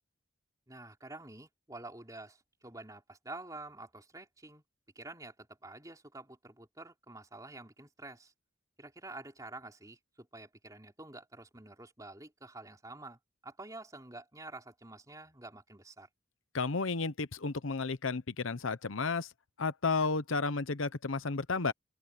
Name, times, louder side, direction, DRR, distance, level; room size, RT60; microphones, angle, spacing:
voice 1, 0.7-4.6 5.0-8.3 8.8-16.1, right 2 dB, 20° right, 3.6 m, -48 dB
voice 2, 16.5-19.3 19.6-21.7, left 4 dB, 90° left, 0.9 m, -32 dB
open air
head